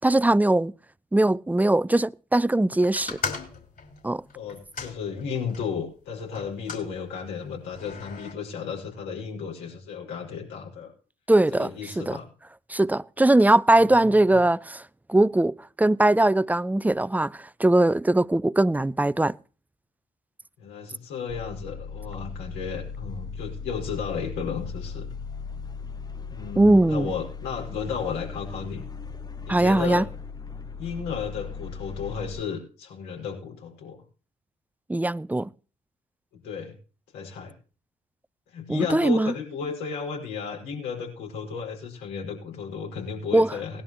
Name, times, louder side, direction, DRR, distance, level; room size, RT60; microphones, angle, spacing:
voice 1, 0.0-0.7 1.1-3.2 4.0-4.2 11.3-12.2 12.7-14.8 15.1-19.4 26.6-27.1 29.5-30.0 34.9-35.5 38.7-39.3 43.3-43.5, right 1 dB, 10° right, 0.5 m, -21 dB
sound 1, 2.9-5.7 6.3-6.9 7.7-8.3, left 5 dB, 55° left, 5.1 m, -36 dB
voice 2, 4.3-10.9 11.5-12.3 14.0-14.4 20.6-25.1 26.3-28.8 29.5-30.1 30.8-34.0 36.3-36.7 37.1-37.5 38.5-43.8, left 6 dB, 75° left, 5.8 m, -34 dB
sound 2, 21.3-32.4, left 5 dB, 20° left, 1.0 m, -38 dB
20.0 x 11.5 x 3.1 m
hypercardioid pair, 45°, 18 cm